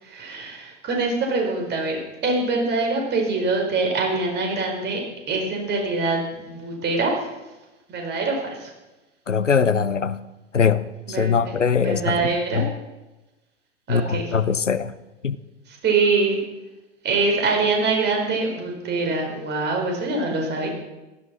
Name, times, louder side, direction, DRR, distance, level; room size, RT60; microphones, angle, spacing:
voice 1, 0.0-5.0 5.3-7.3 7.9-8.7 11.1-11.5 11.8-12.6 13.9-14.3 15.7-16.4 17.0-20.7, right 3 dB, 30° right, 1 dB, 4.7 m, -24 dB
voice 2, 9.3-10.2 10.5-12.7 13.9-14.9 15.2-15.4, left 6 dB, 85° left, 15 dB, 0.8 m, -22 dB
16.5 x 12.5 x 6.2 m, 1.1 s
figure-of-eight pair, 90°, 36 cm